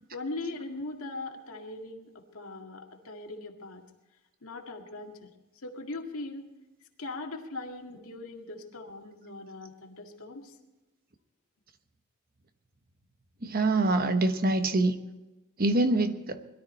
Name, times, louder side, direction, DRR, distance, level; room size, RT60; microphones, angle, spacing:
voice 1, 0.1-3.8 4.4-5.3 5.6-6.5 7.0-10.6, left 2 dB, 75° left, 2 dB, 2.0 m, -40 dB
voice 2, 13.5-15.0 15.6-16.4, right 2 dB, 45° right, 9 dB, 1.1 m, -25 dB
21.5 x 13.0 x 4.4 m, 1.0 s
head